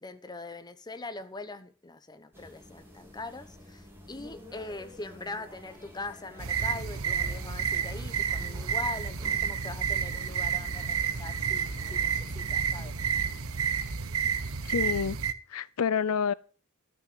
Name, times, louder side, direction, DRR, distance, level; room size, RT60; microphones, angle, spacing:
voice 1, 0.0-12.9, left 3 dB, 20° left, 1.0 m, -42 dB
sound 1, 2.3-13.4, left 1 dB, 10° right, 3.2 m, -51 dB
sound 2, 6.4-15.3, right 7 dB, 75° right, 1.0 m, -30 dB
voice 2, 14.7-15.2 15.5-16.3, left 6 dB, 85° left, 0.5 m, -28 dB
13.0 x 6.2 x 7.8 m
head